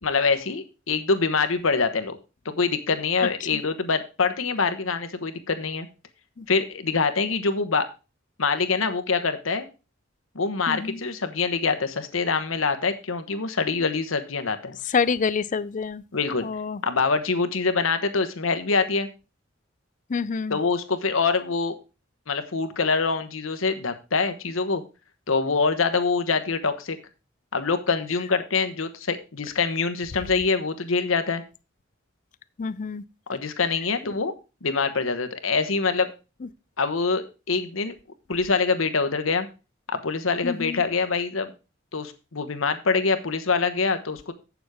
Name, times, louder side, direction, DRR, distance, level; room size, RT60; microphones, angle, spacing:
voice 1, 0.0-2.2 2.4-5.9 6.5-7.9 8.4-9.7 10.3-14.8 16.1-16.5 16.8-19.1 20.5-21.7 22.3-24.8 25.3-27.0 27.5-31.4 33.3-34.3 34.6-36.1 36.8-37.9 38.3-39.5 39.9-41.5 41.9-44.3, left 4 dB, 85° left, 1.1 m, -25 dB
voice 2, 10.7-11.0 14.9-16.0 16.4-16.8 20.1-20.6 32.6-33.0 40.4-40.8, left 5 dB, 40° left, 0.4 m, -27 dB
8.1 x 7.0 x 4.9 m
head